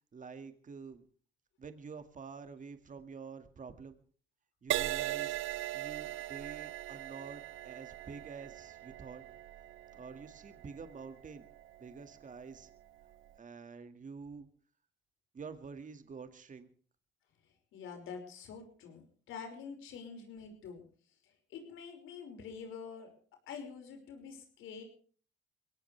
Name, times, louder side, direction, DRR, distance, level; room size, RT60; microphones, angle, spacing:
voice 1, 0.1-1.0 1.6-4.0 4.6-5.4 5.7-9.2 10.0-11.5 11.8-12.7 13.4-14.5 15.3-16.7, right 5 dB, 40° right, 9 dB, 2.0 m, -48 dB
Crash cymbal, 4.7-12.3 13.0-13.3, right 15 dB, 85° right, 0.7 m, -40 dB
voice 2, 17.7-20.8 21.2-23.1 23.5-24.8, left 6 dB, 85° left, 5 dB, 5.4 m, -46 dB
22.5 x 17.5 x 3.3 m, 0.43 s
cardioid pair, 90°, 20 cm